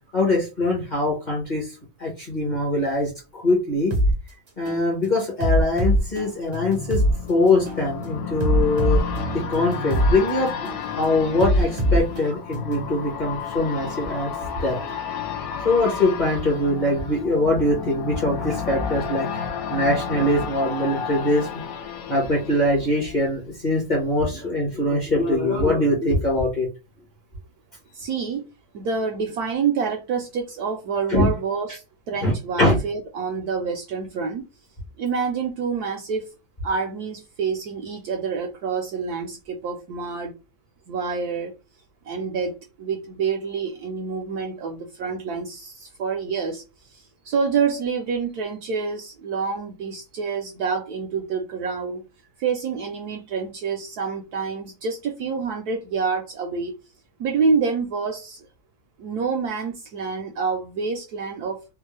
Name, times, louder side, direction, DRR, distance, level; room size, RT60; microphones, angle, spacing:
voice 1, 0.1-3.9 4.6-7.0 7.3-9.0 9.3-14.3 14.6-14.8 15.6-21.6 22.1-26.7 31.1-31.3 32.2-32.3 32.6-32.8, left 1 dB, 30° left, 1.0 m, -22 dB
sound 1, 3.9-4.1 4.7-4.9 5.4-7.1 7.7-7.9 8.4-10.1 10.7-10.9 11.4-12.9, equal, 35° right, 0.6 m, -22 dB
sound 2, 5.7-23.5 23.9-24.0, left 6 dB, 70° left, 0.8 m, -32 dB
voice 2, 27.9-28.4 28.7-34.5 35.0-36.3 36.6-40.3 40.9-41.5 42.0-52.0 52.4-56.7 57.2-58.5 59.0-61.6, right 5 dB, 70° right, 1.0 m, -27 dB
3.6 x 2.3 x 3.1 m
omnidirectional pair, 2.0 m